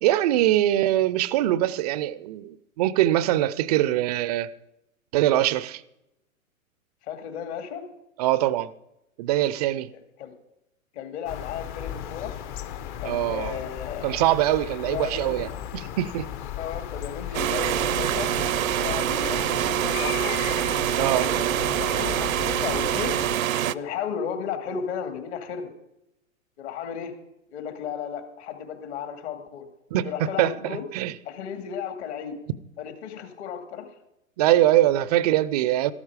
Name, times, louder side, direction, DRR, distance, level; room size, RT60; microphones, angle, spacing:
voice 1, 0.0-4.5 5.1-5.8 8.2-8.7 9.2-9.9 13.0-13.6 14.0-16.3 17.6-17.8 21.0-21.3 29.9-30.1 30.4-31.1 34.4-35.9, right 14 dB, 30° right, 0.4 m, -23 dB
voice 2, 7.0-7.8 10.2-10.3 10.9-12.3 13.0-14.2 14.9-15.4 16.6-18.3 18.8-20.4 21.0-23.2 23.7-25.7 26.6-27.1 27.5-29.7 30.0-30.9 31.3-32.4 32.8-33.9, left 7 dB, 50° left, 2.4 m, -34 dB
sound 1, 11.2-23.4, left 10 dB, 35° left, 0.8 m, -36 dB
sound 2, 17.3-23.7, right 11 dB, 75° right, 0.6 m, -25 dB
13.5 x 12.5 x 4.9 m
hypercardioid pair, 120°, 42 cm